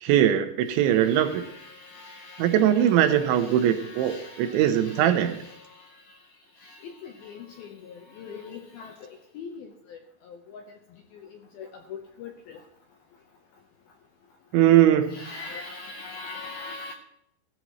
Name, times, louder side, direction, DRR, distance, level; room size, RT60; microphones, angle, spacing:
voice 1, 0.0-1.4 2.4-5.4 14.5-15.3, right 11 dB, 80° right, 8 dB, 3.1 m, -21 dB
voice 2, 1.0-5.6 6.6-8.9 9.3-10.0 10.5-10.7 11.6-12.6 15.1-16.9, left 4 dB, 75° left, 3 dB, 2.3 m, -42 dB
17.5 x 14.0 x 3.1 m, 0.74 s
omnidirectional pair, 5.6 m